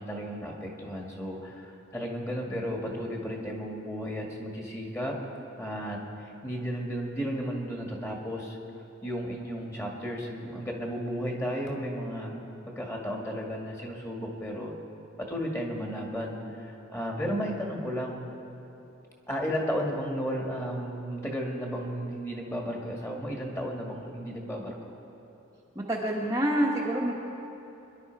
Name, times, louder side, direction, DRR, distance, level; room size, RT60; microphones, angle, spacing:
voice 1, 0.0-5.1 5.6-8.6 9.0-12.3 12.7-14.7 15.2-18.2 19.3-24.8, equal, 15° left, 0 dB, 1.9 m, -34 dB
voice 2, 25.7-27.1, right 1 dB, 15° right, -4 dB, 1.1 m, -27 dB
25.5 x 11.0 x 4.7 m, 2.9 s
head